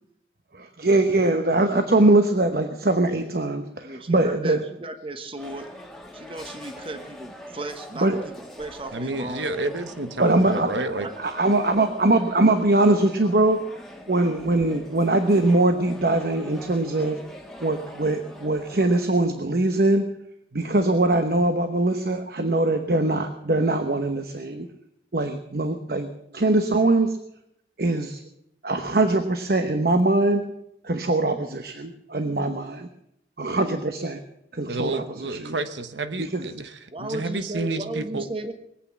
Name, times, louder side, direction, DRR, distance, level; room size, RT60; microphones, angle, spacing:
voice 1, 0.5-4.6 8.0-8.3 10.2-10.7 11.2-13.6 14.1-17.2 17.6-20.1 20.5-24.7 25.1-27.2 27.8-28.2 28.6-30.4 30.8-32.9 33.4-34.2 34.5-35.5 36.3-36.6, right 2 dB, 55° right, 7 dB, 1.0 m, -22 dB
voice 2, 3.8-5.7 6.1-9.5 10.4-11.1 36.9-38.5, right 1 dB, 30° right, 7 dB, 1.1 m, -35 dB
sound 1, 5.4-19.1, equal, ahead, 1.5 m, -43 dB
voice 3, 8.9-11.1 34.7-38.2, right 2 dB, 85° right, 9 dB, 1.1 m, -30 dB
21.0 x 8.5 x 7.3 m, 0.79 s
head